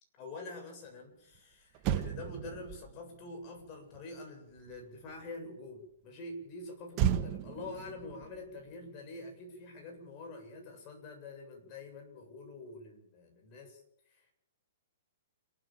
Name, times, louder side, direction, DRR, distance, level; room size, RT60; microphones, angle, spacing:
voice 1, 0.2-14.3, left 2 dB, 30° left, 3 dB, 7.7 m, -46 dB
Motor vehicle (road), 1.3-1.4 1.7-5.3 6.9-9.5 9.8-10.1, right 9 dB, 30° right, 1.6 m, -36 dB
29.0 x 13.0 x 7.5 m, 0.73 s
hypercardioid pair, 155°, 0 cm